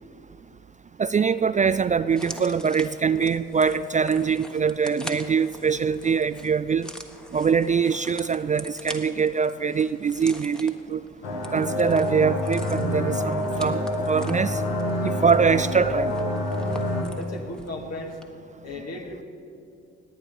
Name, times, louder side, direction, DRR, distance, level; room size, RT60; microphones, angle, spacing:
voice 1, 1.0-6.9 7.3-11.0 11.5-13.8 14.1-14.6 15.0-16.1, right 6 dB, 25° right, 14 dB, 0.4 m, -23 dB
sound 1, 2.1-17.8 18.1-18.2, equal, ahead, 1.4 m, -44 dB
sound 2, 11.2-17.0, left 1 dB, 85° left, 1.8 m, -27 dB
voice 2, 17.1-18.2 18.6-19.2, left 2 dB, 55° left, 2 dB, 2.1 m, -36 dB
19.0 x 8.6 x 5.4 m, 2.5 s
hypercardioid pair, 50°, 30 cm